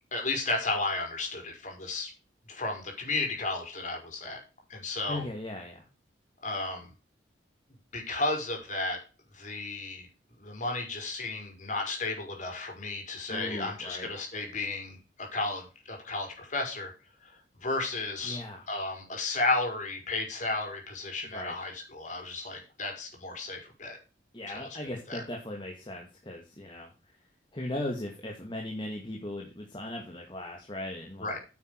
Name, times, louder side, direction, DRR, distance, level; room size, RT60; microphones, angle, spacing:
voice 1, 0.1-2.1 2.5-4.4 4.7-5.2 6.4-6.9 7.9-9.0 9.3-10.1 10.4-16.9 17.3-17.4 17.6-24.0 24.5-25.2 31.2-31.4, left 2 dB, 45° left, 2 dB, 5.1 m, -33 dB
voice 2, 5.1-5.8 13.3-14.1 18.2-18.6 21.2-21.5 24.3-26.9 27.5-31.4, left 1 dB, 25° left, 0 dB, 2.2 m, -38 dB
9.6 x 8.5 x 4.8 m, 0.32 s
head